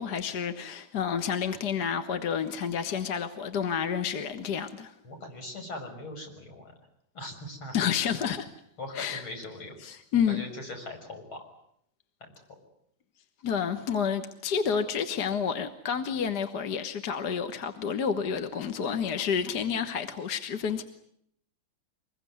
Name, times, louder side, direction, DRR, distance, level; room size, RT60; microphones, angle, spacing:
voice 1, 0.0-4.9 7.7-8.5 9.0-9.2 9.8-10.4 13.4-20.8, left 7 dB, 55° left, 1.8 m, -29 dB
voice 2, 5.0-6.7 7.1-7.9 8.8-9.9 10.3-11.4, left 2 dB, 80° left, 7.0 m, -40 dB
25.0 x 21.5 x 9.4 m
omnidirectional pair, 2.2 m